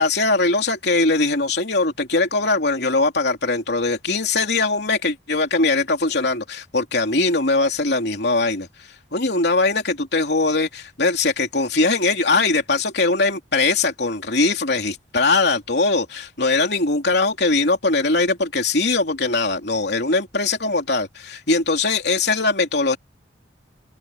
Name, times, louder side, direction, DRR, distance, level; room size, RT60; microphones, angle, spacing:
voice 1, 0.0-23.0, left 3 dB, 60° left, 3.4 m, -21 dB
head